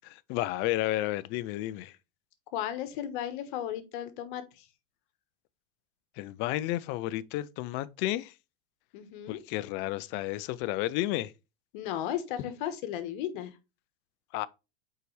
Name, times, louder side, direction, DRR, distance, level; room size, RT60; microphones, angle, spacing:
voice 1, 0.3-1.9 6.2-8.3 9.3-11.3 14.3-14.5, left 16 dB, 40° left, 0.5 m, -31 dB
voice 2, 2.5-4.7 8.9-9.4 11.7-13.6, left 11 dB, 60° left, 1.3 m, -35 dB
6.6 x 4.8 x 3.2 m
supercardioid pair, 135°, 29 cm